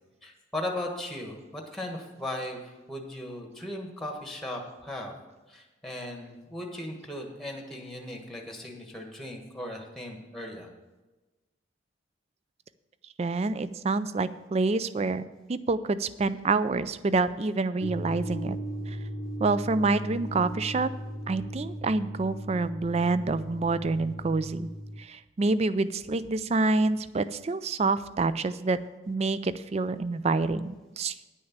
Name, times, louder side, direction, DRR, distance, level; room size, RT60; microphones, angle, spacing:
voice 1, 0.2-2.6 2.9-5.1 5.5-10.7, left 1 dB, ahead, 2 dB, 1.3 m, -37 dB
voice 2, 13.2-15.2 15.5-18.6 18.9-19.0 19.4-20.9 21.3-24.7 25.0-28.8 29.1-31.1, right 3 dB, 30° right, 14 dB, 0.3 m, -27 dB
sound 1, 17.8-25.0, equal, 25° left, 0.6 m, -37 dB
10.0 x 6.4 x 7.3 m, 1.2 s
head